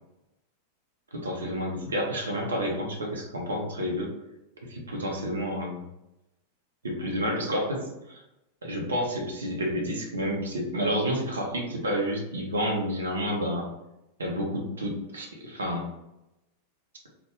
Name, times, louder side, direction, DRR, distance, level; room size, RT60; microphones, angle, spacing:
voice 1, 1.1-4.1 4.6-5.8 6.8-8.2 8.6-13.7 14.2-15.9, equal, 70° right, 0 dB, 0.8 m, -30 dB
3.3 x 2.0 x 3.6 m, 0.90 s
figure-of-eight pair, 90°, 0 cm